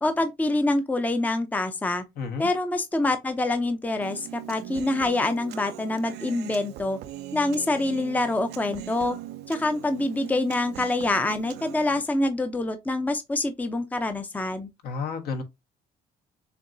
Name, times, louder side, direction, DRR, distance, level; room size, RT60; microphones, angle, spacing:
voice 1, 0.0-2.0 2.4-7.0 7.3-9.2 9.5-14.7, left 2 dB, 10° left, 0.6 m, -26 dB
voice 2, 2.2-2.5 14.8-15.4, left 5 dB, 70° left, 1.5 m, -31 dB
Human voice, 4.0-12.0, right 12 dB, 80° right, 0.6 m, -40 dB
6.7 x 2.9 x 2.7 m
cardioid pair, 110°, 17 cm